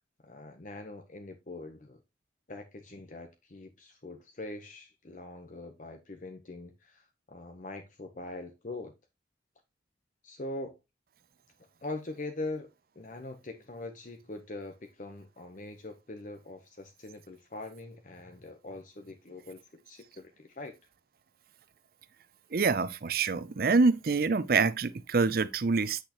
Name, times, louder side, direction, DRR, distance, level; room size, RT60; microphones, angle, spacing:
voice 1, 0.2-2.0 2.5-8.9 10.2-10.8 11.8-20.7, left 2 dB, 45° left, 0.9 m, -42 dB
voice 2, 22.5-26.0, right 4 dB, 50° right, 0.5 m, -26 dB
8.2 x 6.4 x 3.0 m
head